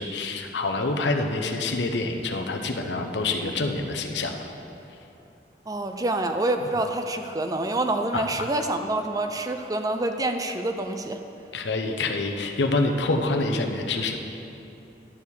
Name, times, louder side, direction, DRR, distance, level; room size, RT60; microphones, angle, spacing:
voice 1, 0.0-4.5 8.1-8.5 11.5-14.2, left 2 dB, 80° left, 4 dB, 0.8 m, -26 dB
voice 2, 5.7-11.2, right 2 dB, 20° right, 6 dB, 0.4 m, -27 dB
11.0 x 4.7 x 7.0 m, 2.8 s
head